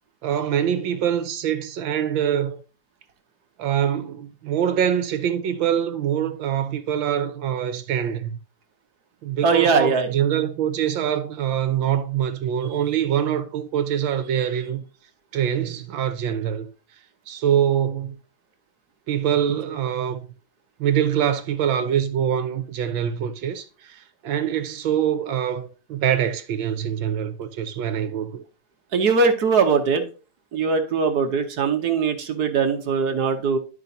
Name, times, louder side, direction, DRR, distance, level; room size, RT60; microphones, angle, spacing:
voice 1, 0.2-2.6 3.6-8.4 9.2-14.8 15.3-16.7 17.3-18.2 19.1-20.2 20.8-28.4, right 9 dB, 75° right, 1.7 m, -24 dB
voice 2, 9.4-10.1 28.9-30.1 30.5-33.6, right 5 dB, 55° right, 1.5 m, -21 dB
12.5 x 5.0 x 2.7 m
omnidirectional pair, 2.2 m